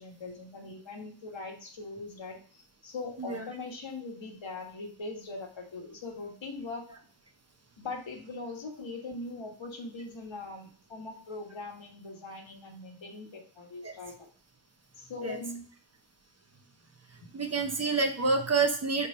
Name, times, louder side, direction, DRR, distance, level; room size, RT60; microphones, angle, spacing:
voice 1, 0.0-6.9 7.8-14.3 15.0-15.7, left 3 dB, 70° left, 2 dB, 1.7 m, -41 dB
voice 2, 17.3-19.1, right 4 dB, 30° right, 4 dB, 1.0 m, -28 dB
7.3 x 3.4 x 4.9 m, 0.44 s
wide cardioid pair, 160°, 48 cm